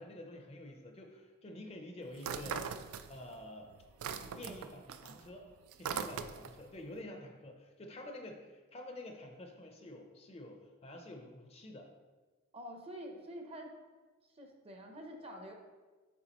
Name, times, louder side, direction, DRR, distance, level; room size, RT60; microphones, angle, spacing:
voice 1, 0.0-2.7 3.1-3.7 4.4-11.9, left 1 dB, 30° left, 3 dB, 0.5 m, -49 dB
sound 1, 2.2-3.4 3.7-6.7, right 6 dB, 80° right, 0.3 m, -40 dB
voice 2, 4.2-4.6 12.5-13.7 14.2-15.5, equal, 25° right, 3 dB, 0.6 m, -48 dB
6.8 x 4.7 x 2.9 m, 1.3 s
head